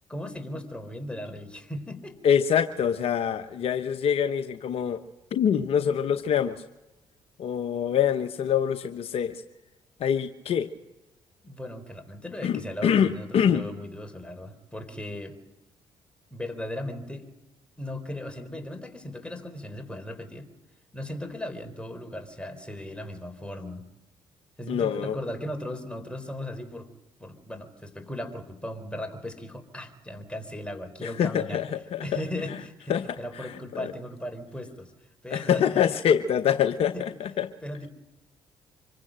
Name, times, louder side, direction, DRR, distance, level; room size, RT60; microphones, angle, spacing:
voice 1, 0.1-2.2 11.4-15.3 16.3-17.2 17.8-20.5 20.9-23.8 24.6-26.9 27.2-31.6 32.0-34.9 35.2-35.9 36.9-37.1 37.6-37.9, left 1 dB, 10° left, 6 dB, 4.1 m, -37 dB
voice 2, 2.2-5.0 5.3-6.6 7.4-9.4 10.0-10.7 12.4-13.7 24.7-25.2 31.0-32.0 32.5-32.6 32.9-33.0 33.4-33.5 33.7-33.9 35.3-37.5, left 8 dB, 65° left, 9 dB, 0.9 m, -25 dB
25.5 x 15.5 x 7.6 m, 1.1 s
hypercardioid pair, 55°, 11 cm